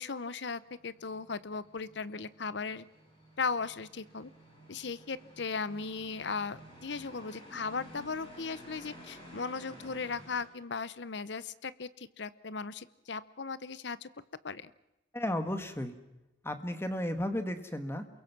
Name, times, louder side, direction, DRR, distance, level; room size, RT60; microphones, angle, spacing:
voice 1, 0.0-2.8 3.4-4.3 4.7-14.1 14.4-14.7, left 4 dB, 60° left, 17 dB, 0.8 m, -37 dB
sound 1, 0.6-10.5, equal, 30° left, 7.8 m, -53 dB
voice 2, 15.1-15.9 16.4-18.1, left 1 dB, 10° left, 8 dB, 1.6 m, -34 dB
28.0 x 22.5 x 6.0 m, 0.95 s
head